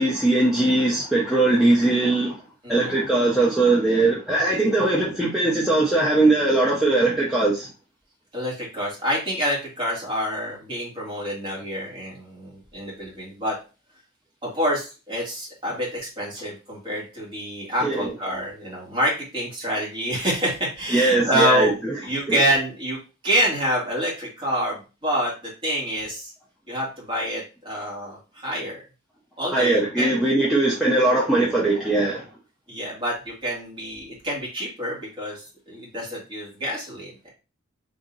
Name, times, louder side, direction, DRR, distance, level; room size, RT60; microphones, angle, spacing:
voice 1, 0.0-2.4 2.7-7.7 17.8-18.1 20.9-22.0 22.3-22.4 29.5-32.2, right 2 dB, ahead, 0.6 m, -20 dB
voice 2, 2.6-3.0 8.3-13.6 14.4-23.0 23.2-26.3 26.7-28.8 29.4-30.1 31.7-32.1 32.7-37.3, equal, 25° right, 1.9 m, -27 dB
3.8 x 2.8 x 3.9 m
head